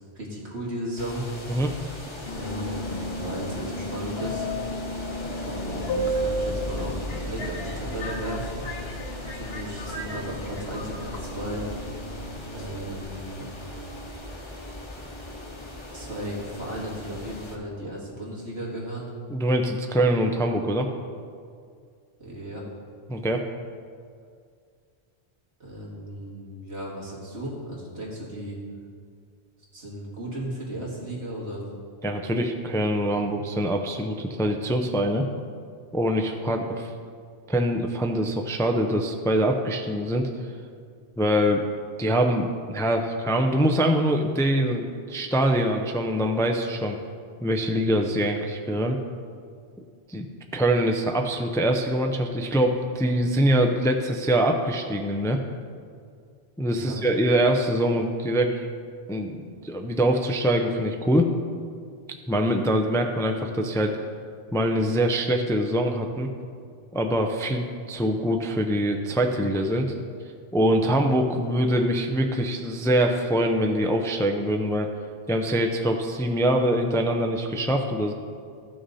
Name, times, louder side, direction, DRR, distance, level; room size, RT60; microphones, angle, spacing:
voice 1, 0.2-1.3 2.3-4.5 5.4-8.5 9.3-11.7 12.5-13.5 15.9-19.1 22.2-22.7 25.6-28.6 29.7-31.6 56.6-57.0, right 1 dB, 80° right, -4 dB, 2.4 m, -35 dB
sound 1, 1.0-17.6, left 1 dB, 30° left, 1.0 m, -41 dB
Subway metro underground, 2.3-13.0, equal, 65° left, 1.3 m, -33 dB
sound 2, 5.2-17.1, equal, 65° right, 2.5 m, -41 dB
voice 2, 19.3-20.9 23.1-23.4 32.0-35.2 35.9-36.9 37.5-40.3 41.2-41.6 42.0-47.0 47.4-49.0 50.1-50.3 50.5-55.4 56.6-58.7 59.1-61.3 62.3-64.0 64.5-66.3 66.9-69.9 70.5-74.9 75.3-78.1, equal, 5° left, 3 dB, 0.4 m, -24 dB
14.0 x 6.5 x 4.2 m, 2.2 s
omnidirectional pair, 1.1 m